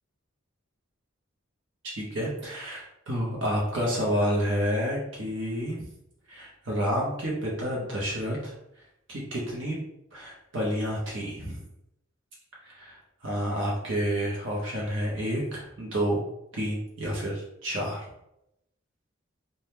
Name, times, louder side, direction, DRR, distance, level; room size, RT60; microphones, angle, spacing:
voice 1, 1.8-5.8 6.3-8.5 9.1-9.8 10.1-11.6 12.6-16.2 16.5-18.1, equal, 65° right, -4 dB, 0.7 m, -29 dB
2.8 x 2.1 x 3.4 m, 0.82 s
head